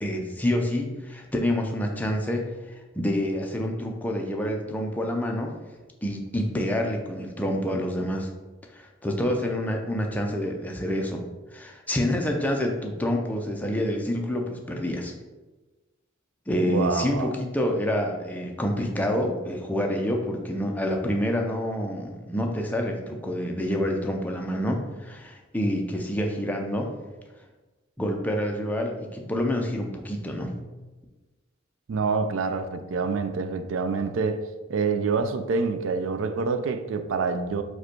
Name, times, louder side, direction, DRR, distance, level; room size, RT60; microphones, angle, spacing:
voice 1, 0.0-2.5 3.0-5.5 6.0-8.3 8.7-11.2 11.5-15.1 16.5-26.9 28.0-30.6, equal, 10° left, 0.5 m, -27 dB
voice 2, 16.6-17.3 31.9-34.4 34.7-37.6, right 4 dB, 85° right, 0.4 m, -26 dB
4.9 x 2.2 x 4.4 m
head